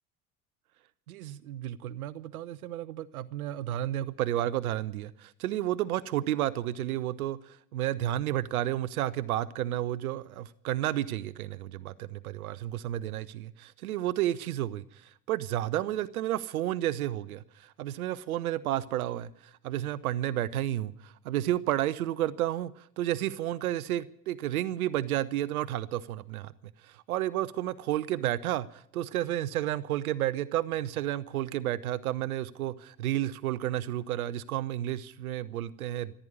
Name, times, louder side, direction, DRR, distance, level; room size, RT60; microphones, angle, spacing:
voice 1, 1.1-26.5 26.8-36.1, right 13 dB, 75° right, 0.7 m, -31 dB
15.0 x 10.0 x 9.5 m
figure-of-eight pair, 60°, 44 cm